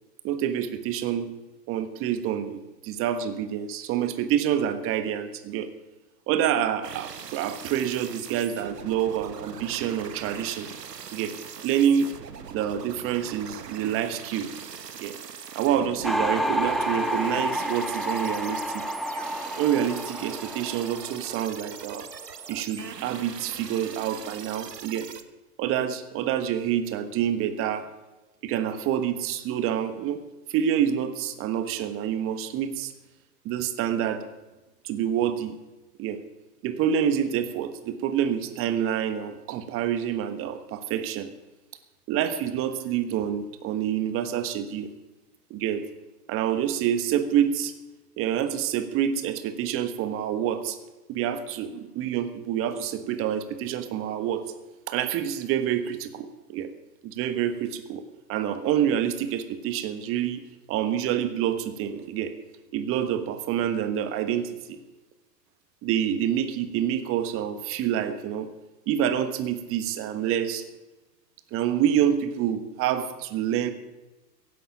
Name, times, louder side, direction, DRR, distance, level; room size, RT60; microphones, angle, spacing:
voice 1, 0.2-1.3 1.7-5.7 6.3-10.7 11.1-11.4 11.6-12.2 12.5-14.5 15.0-15.1 15.5-18.8 19.6-22.1 22.5-25.1 25.6-27.9 28.4-30.2 30.5-32.9 33.4-34.2 34.8-35.6 36.0-36.2 36.6-41.3 42.1-44.9 45.5-45.8 46.3-47.7 48.2-50.8 51.1-54.4 54.9-56.7 57.0-58.0 58.3-60.4 60.7-62.3 62.7-64.8 65.8-68.5 68.9-70.6 71.5-73.7, right 9 dB, 25° right, 11 dB, 1.3 m, -27 dB
sound 1, 6.8-25.2, right 7 dB, 75° right, 1.3 m, -41 dB
sound 2, 16.0-21.9 22.1-22.6, equal, ahead, 1.1 m, -30 dB
15.5 x 11.0 x 6.1 m, 1.1 s
figure-of-eight pair, 110°, 49 cm